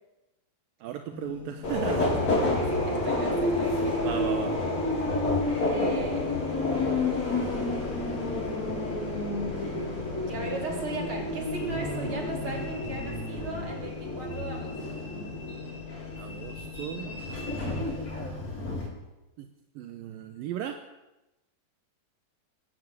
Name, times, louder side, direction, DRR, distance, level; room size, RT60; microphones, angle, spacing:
voice 1, 0.8-2.2 4.0-4.5 16.2-17.2 19.4-19.5 19.8-20.8, right 10 dB, 75° right, 6 dB, 2.7 m, -36 dB
sound 1, 1.1-18.4, left 6 dB, ahead, 6.6 m, -43 dB
Subway metro underground, 1.6-18.9, left 2 dB, 45° left, 5.9 m, -30 dB
voice 2, 1.8-2.2 2.4-4.4 5.7-6.3 10.3-15.0, right 3 dB, 35° right, 0 dB, 5.2 m, -37 dB
19.5 x 17.0 x 8.4 m, 1.0 s
omnidirectional pair, 4.2 m